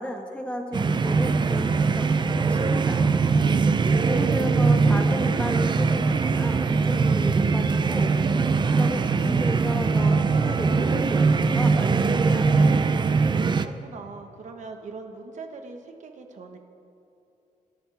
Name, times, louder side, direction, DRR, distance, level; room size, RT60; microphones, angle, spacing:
voice 1, 0.0-3.1 4.1-8.1 8.8-12.5, left 1 dB, 10° left, 3 dB, 1.4 m, -33 dB
sound 1, 0.7-13.7, right 4 dB, 35° right, 0.6 m, -21 dB
voice 2, 13.5-16.6, right 4 dB, 60° right, 5 dB, 1.4 m, -42 dB
27.5 x 13.5 x 3.5 m, 2.9 s
wide cardioid pair, 140°, 14 cm